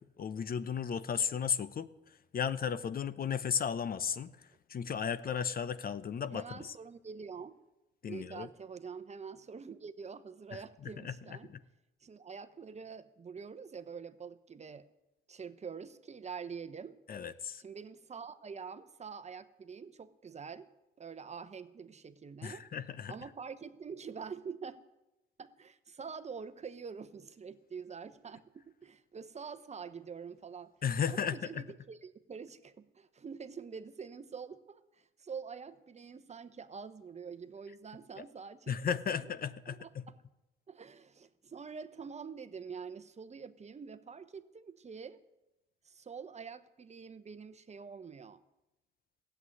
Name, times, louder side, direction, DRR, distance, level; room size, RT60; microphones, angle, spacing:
voice 1, 0.2-6.7 8.0-8.5 10.5-11.1 11.4-11.6 17.1-17.6 22.4-23.1 30.8-31.6 38.2-38.3 38.7-40.0, left 7 dB, 50° left, 14 dB, 0.8 m, -35 dB
voice 2, 6.3-7.6 8.1-11.5 12.0-14.9 15.3-17.0 17.6-20.7 21.0-22.6 23.1-24.8 25.4-30.7 31.1-39.3 39.7-39.9 40.7-45.2 45.8-48.4, right 6 dB, 35° right, 12 dB, 1.0 m, -46 dB
15.5 x 8.0 x 9.7 m, 0.97 s
cardioid pair, 90°, 20 cm